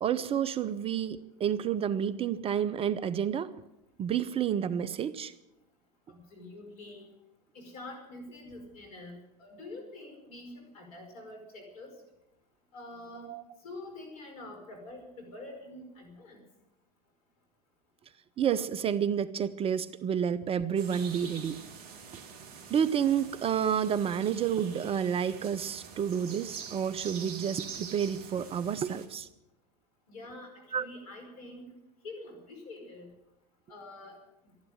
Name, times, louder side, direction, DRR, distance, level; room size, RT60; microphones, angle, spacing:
voice 1, 0.0-3.5 4.0-5.3 13.3-13.4 18.4-21.6 22.7-29.3 30.7-30.9, right 8 dB, 30° right, 15 dB, 0.7 m, -30 dB
voice 2, 6.1-7.1 7.5-11.9 12.7-13.3 13.6-16.4 30.1-31.7 32.0-33.1 33.7-34.2, left 2 dB, 65° left, 4 dB, 5.1 m, -46 dB
sound 1, 20.8-29.1, right 6 dB, 45° right, 2.4 m, -45 dB
13.5 x 11.5 x 9.0 m, 0.89 s
hypercardioid pair, 90°, 20 cm